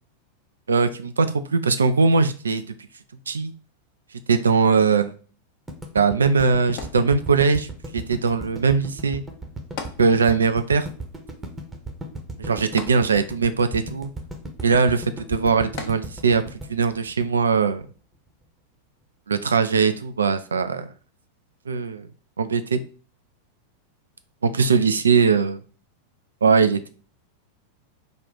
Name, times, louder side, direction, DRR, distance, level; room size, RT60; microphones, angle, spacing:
voice 1, 0.7-2.6 3.3-3.5 4.3-5.1 5.9-7.7 7.9-9.2 10.0-10.9 12.5-14.1 14.6-16.4 16.7-17.9 19.3-20.9 21.7-22.1 22.4-22.8 24.4-25.6 26.4-26.9, right 5 dB, 70° right, 10 dB, 0.4 m, -20 dB
sound 1, 5.7-17.8, right 1 dB, 10° right, 0.8 m, -36 dB
sound 2, 6.8-7.7 9.8-10.6 10.9-11.0 12.8-13.6 15.8-16.5 17.2-17.3, left 5 dB, 50° left, 0.7 m, -38 dB
3.3 x 2.4 x 4.0 m, 0.39 s
figure-of-eight pair, 90°, 0 cm